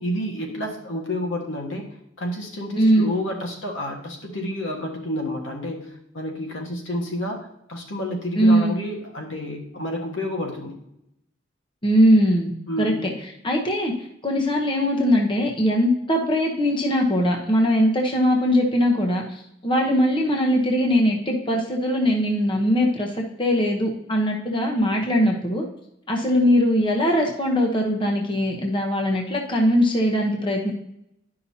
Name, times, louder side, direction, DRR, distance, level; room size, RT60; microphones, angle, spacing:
voice 1, 0.0-1.9 2.2-10.8 12.7-13.1, left 1 dB, 75° left, 0 dB, 1.6 m, -30 dB
voice 2, 2.8-3.1 8.4-8.7 11.8-12.5 12.8-13.1 13.4-13.9 14.2-25.6 26.1-30.7, equal, 25° left, 1 dB, 0.9 m, -21 dB
11.0 x 5.7 x 2.8 m, 0.80 s
head